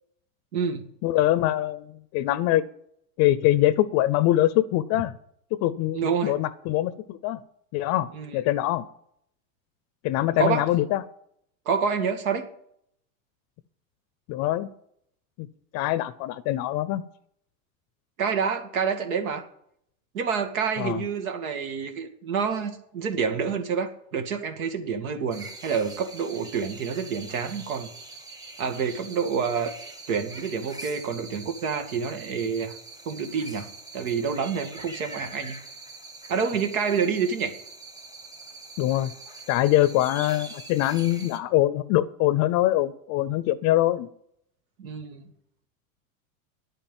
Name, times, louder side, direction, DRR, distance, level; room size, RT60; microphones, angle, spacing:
voice 1, 0.5-0.9 5.9-6.3 8.1-8.4 10.4-10.6 11.7-12.5 18.2-19.4 20.1-27.9 28.6-29.7 30.1-32.8 33.1-33.7 33.9-35.6 36.3-37.5 44.8-45.3, right 6 dB, 80° right, 6 dB, 2.2 m, -28 dB
voice 2, 1.0-2.6 3.2-5.1 5.6-7.4 7.7-8.1 8.3-8.8 10.0-11.0 14.3-14.7 15.4-15.5 15.7-17.0 20.8-21.0 38.8-39.1 39.5-44.1, left 14 dB, 40° left, 16 dB, 0.6 m, -23 dB
sound 1, 25.3-41.4, right 3 dB, 10° right, 1.1 m, -43 dB
10.5 x 9.0 x 9.0 m, 0.71 s
supercardioid pair, 130°, 42 cm